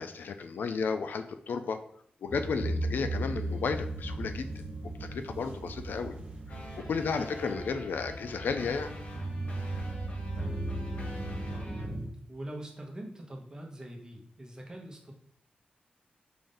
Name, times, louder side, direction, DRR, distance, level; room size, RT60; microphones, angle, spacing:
voice 1, 0.0-1.8 2.2-4.5 5.0-6.2 6.5-6.6 6.9-8.9, left 5 dB, 80° left, 8 dB, 0.3 m, -33 dB
voice 2, 2.3-2.6 5.0-5.5 6.7-7.2 9.4-9.8 10.3-11.1 11.5-15.1, right 1 dB, 20° right, 1 dB, 0.8 m, -46 dB
sound 1, 2.3-12.1, right 1 dB, 50° right, 1.3 m, -36 dB
sound 2, 6.5-11.9, left 1 dB, 45° left, 0.9 m, -47 dB
5.0 x 2.6 x 3.7 m, 0.67 s
wide cardioid pair, 115°, 3 cm